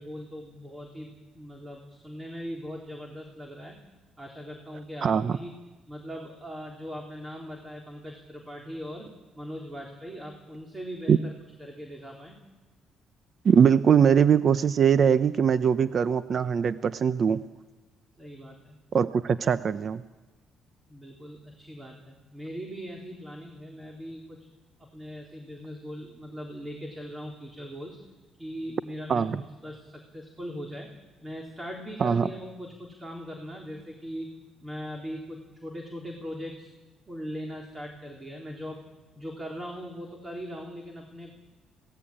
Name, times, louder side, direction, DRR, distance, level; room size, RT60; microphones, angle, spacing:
voice 1, 0.0-3.8 4.2-5.5 5.9-12.4 18.2-18.8 20.9-24.5 24.8-28.1 28.4-30.9 31.2-34.3 34.6-36.7 37.1-38.8 39.2-41.3, equal, 20° right, 1 dB, 3.9 m, -40 dB
voice 2, 5.0-5.4 11.1-11.2 13.4-17.4 18.9-20.0 29.1-29.4 32.0-32.3, right 7 dB, 50° right, 13 dB, 0.7 m, -21 dB
25.5 x 18.5 x 8.8 m, 1.2 s
cardioid pair, 90°, 0 cm